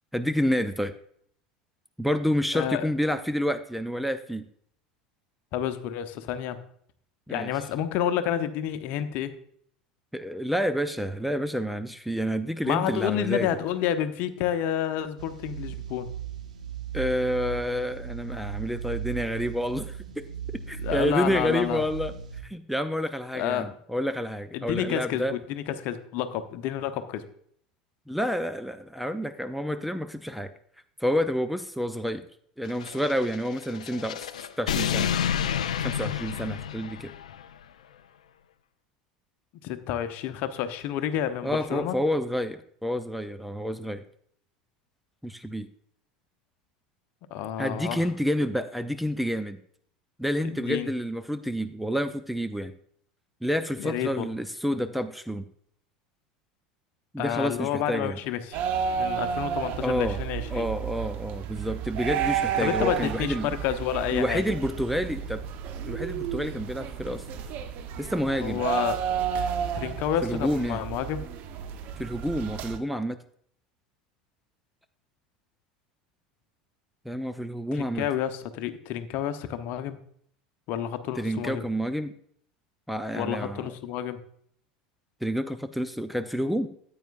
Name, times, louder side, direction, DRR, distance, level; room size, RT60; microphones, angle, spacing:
voice 1, 0.1-0.9 2.0-4.5 7.3-7.5 10.1-13.5 16.9-20.3 20.7-22.1 22.4-25.3 28.1-30.5 31.0-32.2 32.6-34.3 34.6-35.1 35.8-37.1 41.4-44.0 45.2-45.7 47.6-49.6 50.2-52.7 53.4-55.5 57.1-58.2 59.8-60.2 60.5-63.5 64.1-65.4 65.8-67.2 68.0-68.6 70.2-70.8 72.0-73.2 77.1-78.1 81.2-82.1 82.9-83.7 85.2-86.7, equal, ahead, 9 dB, 0.5 m, -29 dB
voice 2, 2.5-2.9 5.5-6.6 7.3-9.3 12.6-16.1 20.8-21.8 23.3-23.7 24.5-27.2 39.6-42.0 47.3-48.1 50.4-50.9 53.8-54.3 57.2-58.6 59.0-60.7 62.6-64.4 68.4-69.0 69.7-71.2 77.7-80.0 80.7-81.6 83.1-84.2, left 10 dB, 50° left, 10 dB, 0.9 m, -29 dB
sound 1, 15.2-22.4, right 8 dB, 75° right, 1.2 m, -37 dB
sound 2, 32.7-37.5, left 9 dB, 70° left, 0.5 m, -30 dB
sound 3, 58.5-72.8, right 8 dB, 50° right, 0.9 m, -32 dB
14.0 x 8.7 x 2.5 m, 0.63 s
figure-of-eight pair, 75°, 4 cm